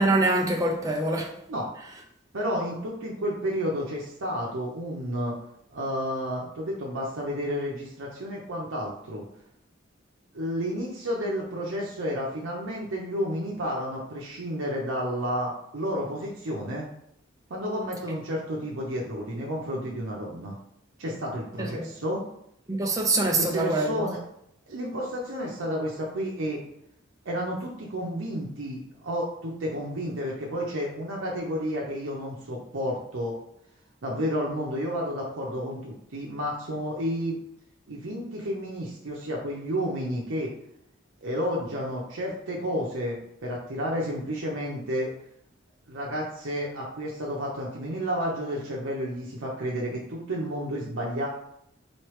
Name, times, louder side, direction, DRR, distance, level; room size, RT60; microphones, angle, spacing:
voice 1, 0.0-1.4 21.6-21.9 22.7-24.0, right 2 dB, 15° right, 0.5 m, -24 dB
voice 2, 2.3-5.4 5.7-9.3 10.3-16.9 17.5-20.6 21.0-22.2 23.4-24.2 24.7-26.6 27.2-33.4 34.0-37.4 37.9-40.5 41.2-45.1 45.9-51.3, equal, 85° right, 0.7 m, -31 dB
4.1 x 3.2 x 3.1 m
head